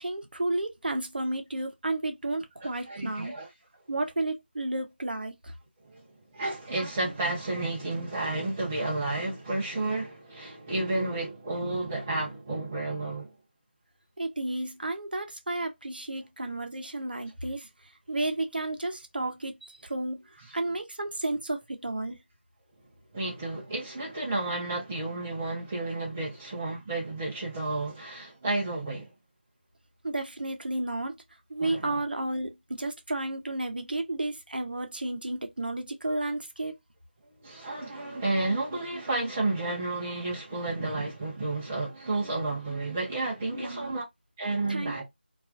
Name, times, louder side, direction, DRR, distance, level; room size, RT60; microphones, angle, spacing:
voice 1, 0.0-3.3 3.9-5.5 14.2-22.2 30.0-31.2 31.5-36.7 43.5-43.9 44.7-45.0, right 2 dB, 60° right, 0.7 m, -32 dB
voice 2, 2.9-3.5 5.8-6.0 6.3-13.3 23.1-29.1 31.6-32.0 37.4-44.0 44.4-45.0, right 2 dB, 10° right, 0.4 m, -31 dB
2.9 x 2.3 x 2.3 m
figure-of-eight pair, 170°, 6 cm